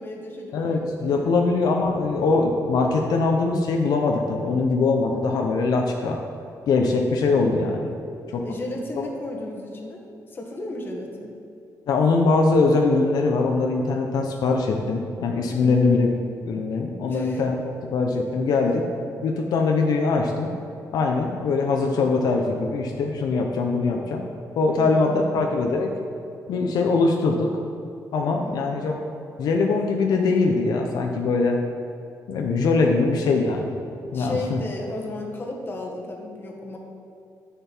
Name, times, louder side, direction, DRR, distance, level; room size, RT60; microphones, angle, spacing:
voice 1, 0.0-1.3 8.4-11.3 15.5-15.9 17.1-17.4 18.5-18.9 24.7-25.4 28.2-28.9 34.1-36.8, left 2 dB, 35° left, 0 dB, 1.4 m, -35 dB
voice 2, 0.5-6.2 6.7-7.9 8.3-8.4 11.9-18.8 19.2-20.5 20.9-24.2 24.6-25.9 26.5-27.5 28.1-28.9 29.4-31.6 32.3-33.7 34.1-34.6, left 3 dB, 80° left, 2 dB, 0.8 m, -22 dB
9.3 x 6.8 x 4.5 m, 2.6 s
cardioid pair, 120°, 7 cm